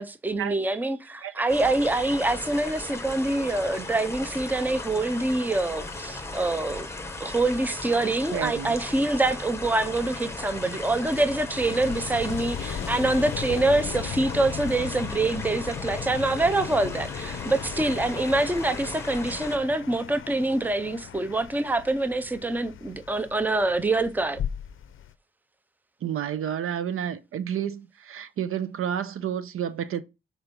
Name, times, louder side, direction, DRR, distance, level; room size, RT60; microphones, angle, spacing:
voice 1, 0.0-6.9 7.2-24.4, right 2 dB, 10° right, 0.5 m, -25 dB
sound 1, 1.5-19.6, left 2 dB, 10° left, 0.9 m, -37 dB
sound 2, 5.8-25.1, left 9 dB, 70° left, 0.5 m, -38 dB
voice 2, 8.3-8.7 26.0-30.0, right 9 dB, 85° right, 0.7 m, -30 dB
5.9 x 4.4 x 5.2 m
wide cardioid pair, 125°, 21 cm